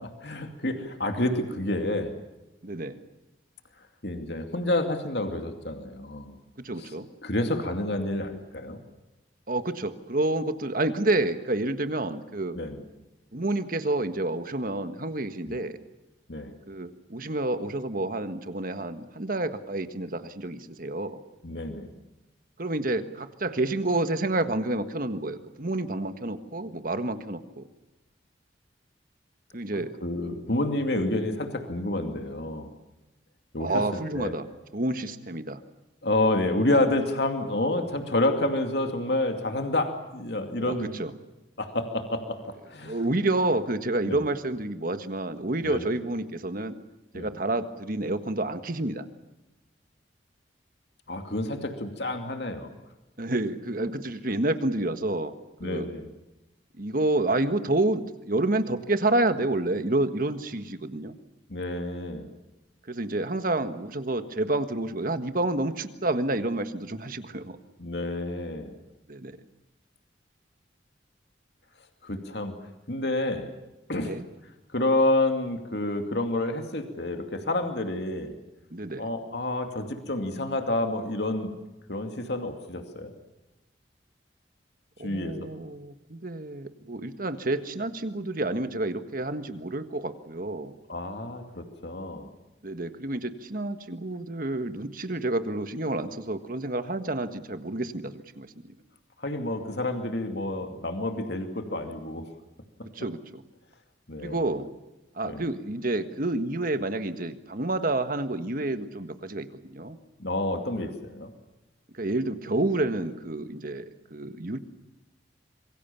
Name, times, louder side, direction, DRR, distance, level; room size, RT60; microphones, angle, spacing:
voice 1, 0.0-2.1 4.0-6.4 6.8-6.9 7.2-8.8 12.5-12.8 15.5-15.6 16.3-16.5 21.4-21.9 29.8-32.7 33.5-33.8 34.1-34.3 36.0-40.9 41.6-42.4 42.7-43.0 44.1-44.2 45.6-45.9 47.1-47.3 51.1-52.7 55.6-56.1 61.5-62.3 67.8-68.7 72.0-72.5 72.9-73.5 73.9-74.1 74.7-78.3 79.0-81.6 81.9-83.1 85.0-85.5 90.9-92.3 99.2-102.3 104.1-104.5 105.2-105.5 110.2-111.3, left 2 dB, 65° left, 5 dB, 2.5 m, -29 dB
voice 2, 2.6-3.0 6.6-7.1 9.5-12.6 13.3-15.8 16.7-21.2 22.6-27.7 29.5-30.0 33.6-34.4 34.7-35.6 40.6-41.1 42.8-46.8 47.1-49.0 53.2-55.3 55.6-55.9 56.8-61.2 62.9-67.6 69.1-69.4 74.0-74.2 78.7-79.1 85.0-90.7 92.6-98.7 102.9-103.4 104.2-104.7 105.1-110.0 110.8-110.9 111.9-114.6, right 2 dB, 50° right, 9 dB, 1.6 m, -29 dB
26.0 x 23.0 x 7.1 m, 0.99 s
head